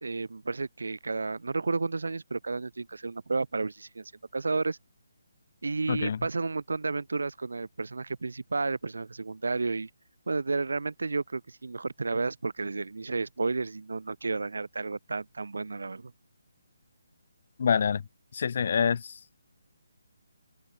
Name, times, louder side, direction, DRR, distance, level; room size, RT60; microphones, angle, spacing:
voice 1, 0.0-4.8 5.6-9.9 10.3-16.1, right 3 dB, 80° right, 1.2 m, -32 dB
voice 2, 5.9-6.2 17.6-18.0 18.3-19.1, left 6 dB, 50° left, 0.5 m, -26 dB
hypercardioid pair, 160°, 0 cm